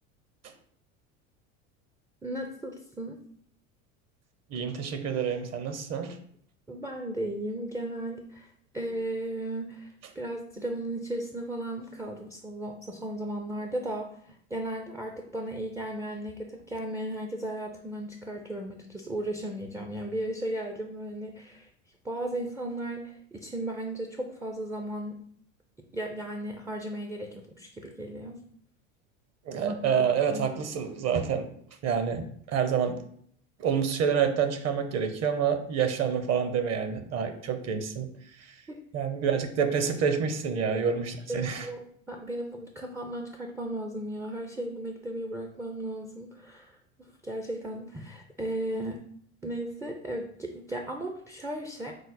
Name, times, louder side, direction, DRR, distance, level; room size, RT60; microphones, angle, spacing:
voice 1, 2.2-3.2 6.7-21.7 22.0-25.2 25.9-28.4 29.6-30.5 38.7-38.8 41.3-49.0 49.4-51.9, right 1 dB, 5° right, 2 dB, 0.3 m, -35 dB
voice 2, 4.5-6.2 29.5-31.5 31.8-33.0 33.6-38.1 38.4-38.5 38.9-41.7, right 7 dB, 40° right, 8 dB, 0.7 m, -28 dB
5.0 x 2.0 x 4.0 m, 0.62 s
hypercardioid pair, 85°, 40 cm